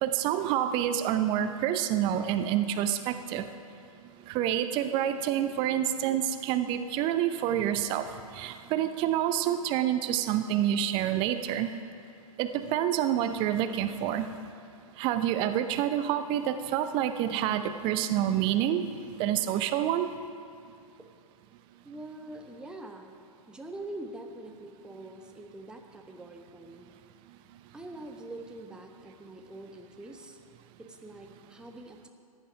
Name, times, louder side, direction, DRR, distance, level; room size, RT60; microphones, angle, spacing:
voice 1, 0.0-3.4 4.3-11.7 12.4-14.3 15.0-20.1, right 11 dB, 25° right, 10 dB, 0.5 m, -28 dB
voice 2, 21.8-23.2 23.5-26.9 27.7-30.4 30.8-32.1, right 1 dB, 5° right, 3 dB, 1.0 m, -44 dB
14.5 x 10.0 x 5.1 m, 2.4 s
figure-of-eight pair, 115°, 19 cm